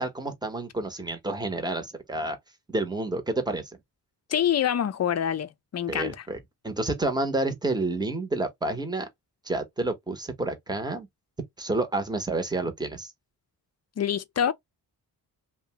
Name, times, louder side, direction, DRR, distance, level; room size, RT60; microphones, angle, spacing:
voice 1, 0.0-2.4 2.7-3.7 5.9-6.4 6.6-9.1 9.4-11.1 11.6-13.1, right 2 dB, 10° right, 0.8 m, -29 dB
voice 2, 4.3-6.2 14.0-14.5, left 9 dB, 40° left, 0.5 m, -26 dB
2.8 x 2.2 x 2.7 m
wide cardioid pair, 110°, 39 cm